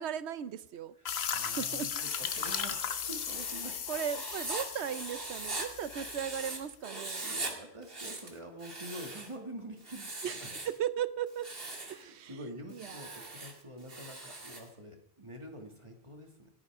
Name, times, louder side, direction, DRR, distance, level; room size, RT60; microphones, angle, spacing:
voice 1, 0.0-1.0 1.4-1.9 3.9-7.4 10.2-11.5 11.8-13.4, right 9 dB, 85° right, 15 dB, 1.0 m, -37 dB
sound 1, 1.0-6.6, left 8 dB, 70° left, 1.1 m, -37 dB
voice 2, 1.0-3.8 7.2-10.6 11.9-16.5, equal, 30° right, 2 dB, 2.3 m, -46 dB
Writing, 1.8-6.6 6.8-7.5 7.8-9.4 9.8-10.8 11.3-12.0 12.7-14.7, right 2 dB, 60° right, 2.3 m, -41 dB
27.5 x 9.9 x 3.7 m, 0.73 s
omnidirectional pair, 1.1 m